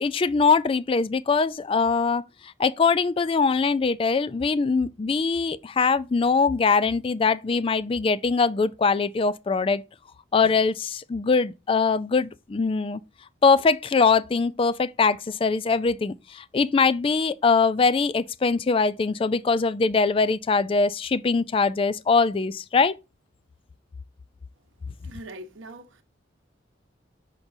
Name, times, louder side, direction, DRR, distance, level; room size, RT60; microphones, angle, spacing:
voice 1, 0.0-9.8 10.3-13.0 13.4-22.9, left 4 dB, 30° left, 0.3 m, -22 dB
voice 2, 25.0-26.0, right 1 dB, 90° right, 1.0 m, -42 dB
6.5 x 6.0 x 2.6 m
head